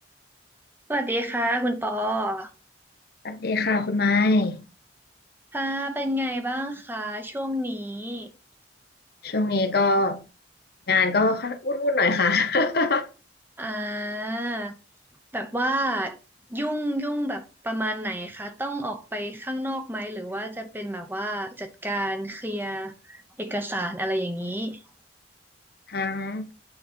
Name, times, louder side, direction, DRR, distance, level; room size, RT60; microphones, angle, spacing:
voice 1, 0.9-2.5 5.5-8.3 13.6-14.7 15.3-16.2 16.5-24.8, right 1 dB, 10° right, 0.8 m, -29 dB
voice 2, 3.2-4.6 9.2-10.2 10.9-13.1 25.9-26.5, left 3 dB, 55° left, 0.8 m, -23 dB
8.7 x 4.0 x 4.3 m
head